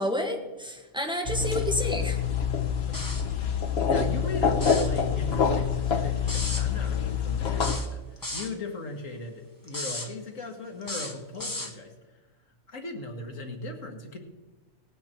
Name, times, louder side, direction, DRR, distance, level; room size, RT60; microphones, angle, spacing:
voice 1, 0.0-2.2, equal, 5° right, 1 dB, 1.7 m, -30 dB
sound 1, 1.3-7.8, left 7 dB, 55° left, 1.1 m, -26 dB
sound 2, 2.9-3.3 4.5-4.9 6.3-6.7 7.6-8.5 9.7-10.1 10.8-11.7, left 1 dB, 15° left, 1.1 m, -35 dB
voice 2, 3.8-11.9 12.7-14.2, left 2 dB, 75° left, 2 dB, 2.1 m, -38 dB
17.5 x 9.5 x 4.5 m, 1.2 s
omnidirectional pair, 1.4 m